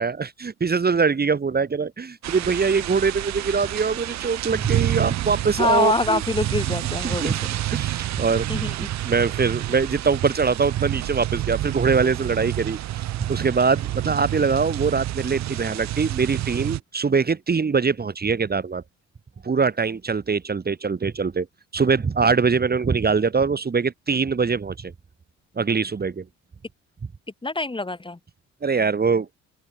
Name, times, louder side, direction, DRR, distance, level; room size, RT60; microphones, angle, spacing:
voice 1, 0.0-6.2 7.0-7.4 7.7-8.5 8.8-18.8 19.4-21.5 21.7-24.9 25.6-26.2 28.6-29.3, right 5 dB, 30° right, 2.5 m, -23 dB
sound 1, 2.2-16.8, right 14 dB, 65° right, 0.7 m, -28 dB
voice 2, 5.6-7.6 8.5-8.7 27.4-28.2, left 2 dB, 15° left, 5.7 m, -25 dB
open air
cardioid pair, 90°, 30 cm